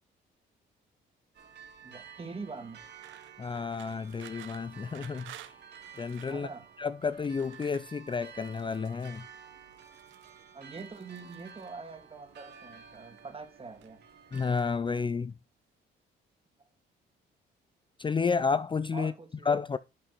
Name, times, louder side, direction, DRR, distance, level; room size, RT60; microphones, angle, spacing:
sound 1, 1.3-14.8, right 7 dB, 65° right, 2.5 m, -52 dB
voice 1, 1.8-2.8 6.3-6.7 10.5-14.0 18.9-19.5, right 4 dB, 30° right, 2.3 m, -44 dB
sound 2, 3.0-6.4 7.1-9.2 9.7-10.4 10.8-11.7 12.6-13.3 13.6-14.1 14.6-15.3, right 13 dB, 85° right, 0.8 m, -54 dB
voice 2, 3.4-5.3 6.0-6.5 6.8-9.2 14.3-15.3 18.0-19.1 19.5-19.8, left 5 dB, 25° left, 0.5 m, -31 dB
11.0 x 5.7 x 4.1 m
cardioid pair, 80°, 19 cm